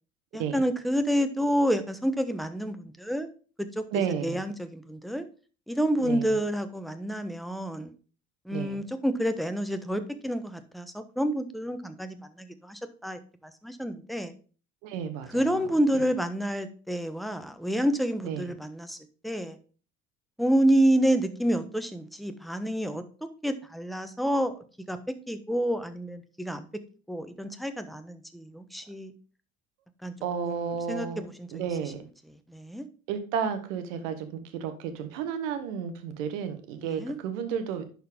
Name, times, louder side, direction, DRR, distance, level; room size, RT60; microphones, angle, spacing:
voice 1, 0.3-3.3 3.7-3.8 4.2-5.2 5.7-7.9 8.4-14.3 15.3-19.0 19.2-19.6 20.4-23.0 23.4-25.0 25.3-26.6 27.1-29.1 30.0-30.1 30.4-30.6 30.9-31.5 32.5-32.8 36.8-37.2, equal, ahead, 1.0 m, -28 dB
voice 2, 3.9-4.4 6.0-6.4 8.5-8.8 14.8-15.7 18.2-18.5 30.2-32.0 33.1-37.9, right 7 dB, 70° right, 1.5 m, -32 dB
10.5 x 4.5 x 3.6 m
hypercardioid pair, 70°, 39 cm